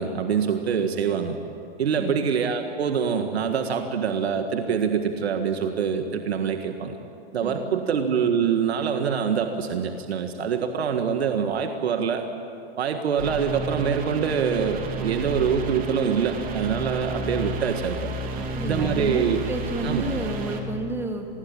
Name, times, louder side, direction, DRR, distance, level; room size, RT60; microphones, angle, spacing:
voice 1, 0.0-1.4 1.8-7.0 7.3-12.3 12.8-18.0 18.6-19.4 19.8-20.0, right 7 dB, 85° right, 6 dB, 1.8 m, -25 dB
voice 2, 7.4-7.9 18.3-21.3, right 2 dB, 5° right, 3 dB, 2.5 m, -31 dB
sound 1, 13.2-20.6, right 2 dB, 30° right, 3.0 m, -31 dB
26.0 x 20.5 x 8.9 m, 2.7 s
hypercardioid pair, 140°, 31 cm